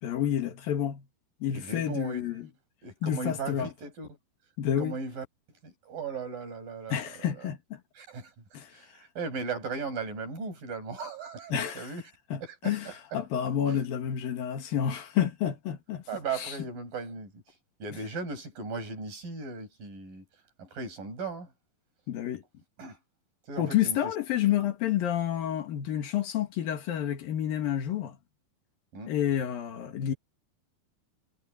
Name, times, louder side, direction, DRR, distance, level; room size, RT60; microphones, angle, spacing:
voice 1, 0.0-1.1 1.4-2.5 3.0-3.7 4.6-5.0 6.9-7.8 8.5-8.7 11.5-11.9 12.3-12.9 13.1-16.0 16.4-16.5 22.1-22.4 23.6-28.2 29.1-30.1, left 10 dB, 75° left, 3.5 m, -29 dB
voice 2, 1.5-2.2 2.8-4.1 4.8-5.2 5.6-7.5 7.9-8.3 8.7-12.0 12.4-13.2 13.7-13.8 16.1-17.4 17.8-20.2 20.6-21.5 22.8-23.0 23.5-24.1 28.9-29.1, right 4 dB, 65° right, 8.5 m, -37 dB
omnidirectional pair, 4.2 m